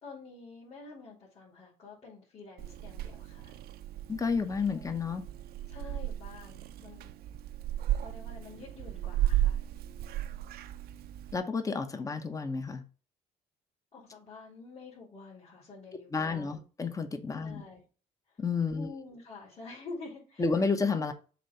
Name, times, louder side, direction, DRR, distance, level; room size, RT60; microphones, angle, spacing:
voice 1, 0.0-3.6 4.8-4.9 5.7-7.2 8.0-9.7 13.9-16.6 17.4-17.8 18.7-20.6 20.9-21.1, left 3 dB, 35° left, 2.7 m, -48 dB
Purr / Meow, 2.6-11.4, right 13 dB, 65° right, 0.5 m, -35 dB
voice 2, 4.1-5.2 11.3-12.8 15.9-17.6 18.4-18.9 20.4-21.1, left 4 dB, 20° left, 0.9 m, -31 dB
7.3 x 2.8 x 5.6 m
cardioid pair, 110°, 17 cm